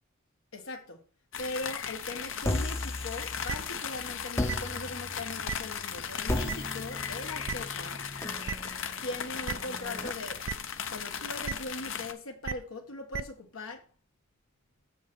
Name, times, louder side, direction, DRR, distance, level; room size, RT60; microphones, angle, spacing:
voice 1, 0.5-1.0 1.4-8.0 9.0-10.5 10.9-13.9, left 2 dB, 85° left, 1.5 m, -40 dB
sound 1, 1.3-12.1, left 7 dB, 70° left, 0.8 m, -37 dB
sound 2, 2.4-3.8 4.3-10.1, left 1 dB, 15° left, 0.6 m, -36 dB
sound 3, 3.5-3.6 4.5-4.6 5.5-5.6 6.5-6.6 7.5-7.6 8.5-8.6 9.5-9.6 10.5-10.6 11.4-11.5 12.4-12.5 13.1-13.2, right 6 dB, 80° right, 0.6 m, -33 dB
7.5 x 5.3 x 6.2 m
head